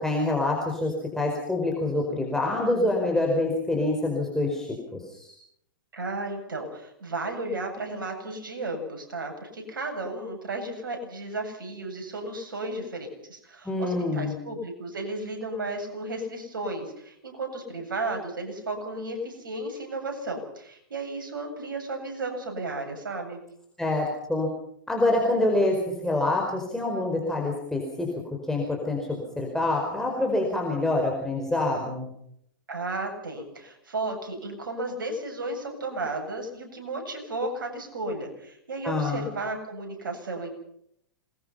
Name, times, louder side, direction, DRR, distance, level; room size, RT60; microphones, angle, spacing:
voice 1, 0.0-5.3 13.6-14.3 23.8-24.5 24.9-28.1 28.5-32.1 38.8-39.3, left 2 dB, 5° left, 0 dB, 5.0 m, -26 dB
voice 2, 5.9-23.4 32.7-40.5, right 2 dB, 75° right, 4 dB, 7.9 m, -34 dB
27.5 x 21.5 x 5.8 m, 0.72 s
hypercardioid pair, 105°, 11 cm